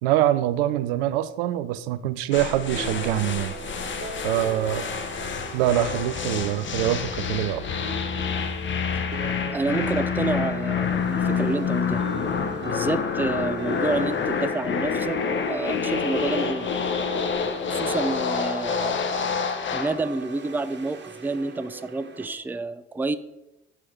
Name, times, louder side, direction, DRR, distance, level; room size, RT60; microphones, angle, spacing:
voice 1, 0.0-3.5 4.2-4.9 5.5-7.6, right 12 dB, 70° right, 14 dB, 0.6 m, -24 dB
sound 1, 2.3-20.0, left 6 dB, 40° left, 1.1 m, -27 dB
sound 2, 2.3-22.3, right 3 dB, 35° right, 1.8 m, -39 dB
voice 2, 9.5-12.0 12.6-15.2 15.5-16.7 17.7-19.0 19.7-23.2, right 3 dB, 5° right, 12 dB, 0.5 m, -29 dB
10.5 x 6.3 x 4.3 m, 0.92 s
figure-of-eight pair, 50°, 31 cm